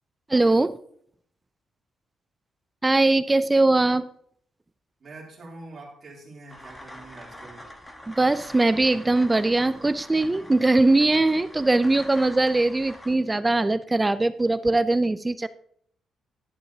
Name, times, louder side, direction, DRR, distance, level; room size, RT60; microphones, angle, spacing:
voice 1, 0.3-0.8 2.8-4.1 8.1-15.5, right 2 dB, 10° right, 14 dB, 0.3 m, -21 dB
voice 2, 5.0-7.7, right 2 dB, 35° right, -3 dB, 2.9 m, -44 dB
sound 1, 6.5-13.2, equal, 10° left, 1.1 m, -45 dB
11.5 x 10.5 x 2.7 m, 0.63 s
cardioid pair, 170°, 0 cm